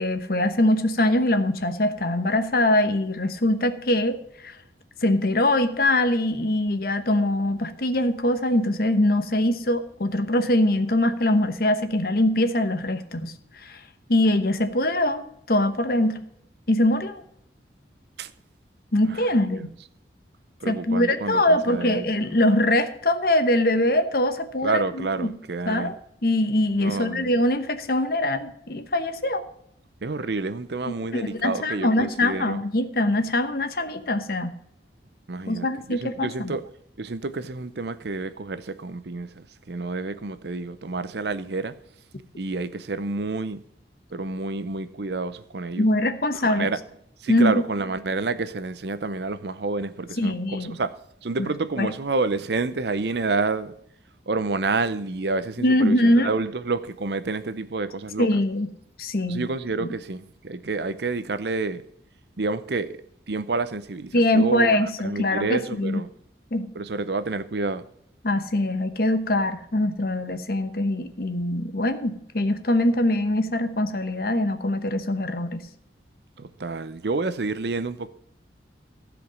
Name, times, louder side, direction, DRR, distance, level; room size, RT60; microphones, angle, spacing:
voice 1, 0.0-4.5 5.0-13.3 13.6-13.8 14.1-16.2 16.7-17.2 18.9-19.7 20.7-25.3 25.7-25.9 26.2-29.4 30.9-34.5 35.5-36.6 45.8-46.7 47.3-47.5 50.2-50.8 51.4-51.5 51.8-51.9 55.6-56.3 58.2-58.7 59.0-59.5 64.1-66.0 66.5-66.7 68.2-75.6, left 1 dB, 55° left, 1.0 m, -23 dB
voice 2, 20.6-22.1 24.6-25.9 26.8-27.3 30.0-32.6 35.3-36.6 37.0-41.7 42.4-43.6 44.1-45.9 46.4-46.8 47.2-50.9 51.2-53.7 54.3-58.3 59.3-61.8 62.4-62.9 63.3-66.1 66.7-67.9 76.4-78.1, right 3 dB, 65° right, 0.7 m, -29 dB
15.0 x 5.2 x 6.3 m
head